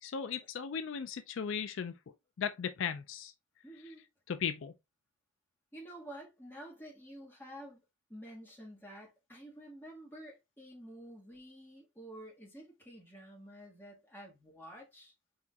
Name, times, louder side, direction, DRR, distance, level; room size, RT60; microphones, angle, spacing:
voice 1, 0.0-1.9 2.4-3.3 4.3-4.7, left 7 dB, 65° left, 0.4 m, -36 dB
voice 2, 3.6-4.0 5.7-7.8 8.1-15.1, right 1 dB, 10° left, 1.6 m, -50 dB
4.7 x 4.2 x 2.3 m
head